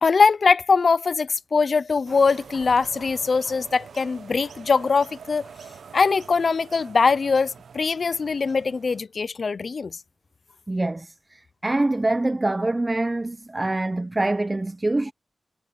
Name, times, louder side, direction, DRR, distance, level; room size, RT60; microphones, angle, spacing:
voice 1, 0.0-5.4 5.9-10.0, left 4 dB, 60° left, 0.6 m, -22 dB
sound 1, 2.0-9.0, right 6 dB, 85° right, 0.9 m, -45 dB
voice 2, 10.7-15.1, right 2 dB, 25° right, 0.8 m, -25 dB
cardioid pair, 60°, 0 cm